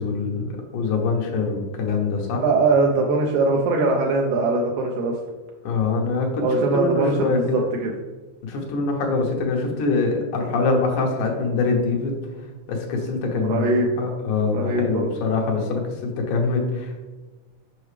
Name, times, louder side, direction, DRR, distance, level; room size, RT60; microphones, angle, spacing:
voice 1, 0.0-2.4 5.6-6.4 6.7-7.7 8.4-12.2 12.7-13.6 14.0-17.1, left 4 dB, 85° left, 0 dB, 2.6 m, -24 dB
voice 2, 2.4-5.1 6.4-7.9 13.5-13.9 14.5-15.0, right 3 dB, 80° right, 0 dB, 2.1 m, -21 dB
7.1 x 5.7 x 3.2 m, 1.2 s
omnidirectional pair, 3.5 m